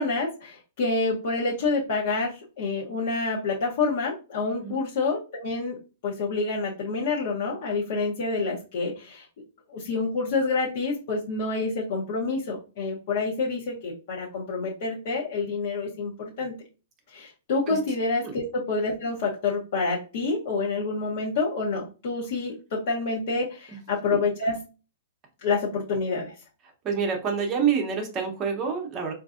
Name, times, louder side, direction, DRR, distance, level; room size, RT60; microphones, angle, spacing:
voice 1, 0.0-9.3 9.7-16.1 16.4-16.6 17.1-24.6 25.4-26.3, left 3 dB, 45° left, -5 dB, 0.9 m, -28 dB
voice 2, 26.8-29.1, right 6 dB, 15° right, 2 dB, 0.8 m, -27 dB
4.6 x 2.6 x 2.4 m, 0.34 s
hypercardioid pair, 175°, 0 cm